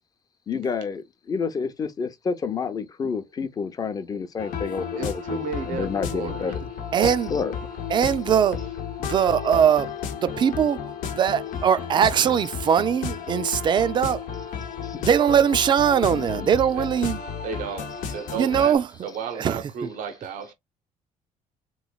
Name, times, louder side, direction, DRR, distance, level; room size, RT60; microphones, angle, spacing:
voice 1, 0.5-6.7 7.3-7.5 14.8-15.0 16.1-16.6 18.1-18.2 19.1-19.2, left 5 dB, 30° left, 0.6 m, -29 dB
sound 1, 4.4-18.8, left 7 dB, 85° left, 0.9 m, -33 dB
voice 2, 5.0-6.7 16.7-16.9 17.4-20.5, right 5 dB, 85° right, 0.8 m, -34 dB
voice 3, 6.9-7.3 7.9-8.6 9.0-10.8 11.1-14.2 15.0-17.2 18.3-18.9 19.4-19.6, right 8 dB, 35° right, 0.4 m, -21 dB
3.5 x 3.1 x 2.3 m
cardioid pair, 135°, 13 cm